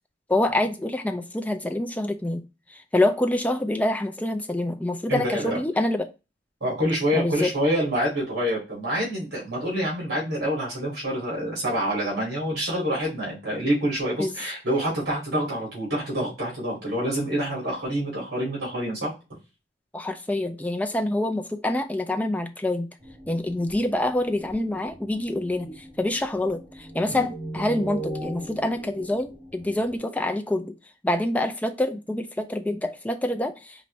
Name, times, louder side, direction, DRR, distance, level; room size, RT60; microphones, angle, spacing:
voice 1, 0.3-2.4 2.7-6.1 7.1-7.5 14.2-14.3 19.9-22.9 23.3-30.8 31.0-33.9, left 1 dB, 10° left, 0.4 m, -26 dB
voice 2, 5.1-5.6 6.6-19.1 27.1-27.2, equal, 55° right, 2.3 m, -27 dB
sound 1, 23.0-30.0, right 1 dB, 20° right, 1.4 m, -39 dB
4.5 x 2.5 x 3.1 m
head